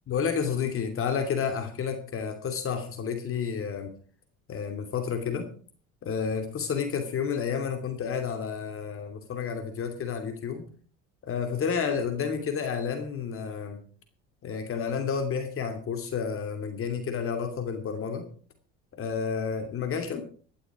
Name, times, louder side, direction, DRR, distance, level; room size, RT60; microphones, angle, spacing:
voice 1, 0.1-3.9 4.5-5.5 6.0-10.7 11.2-13.8 14.4-18.3 18.9-20.2, left 6 dB, 50° left, 7 dB, 2.7 m, -30 dB
17.5 x 11.5 x 5.0 m, 0.43 s
supercardioid pair, 90°, 29 cm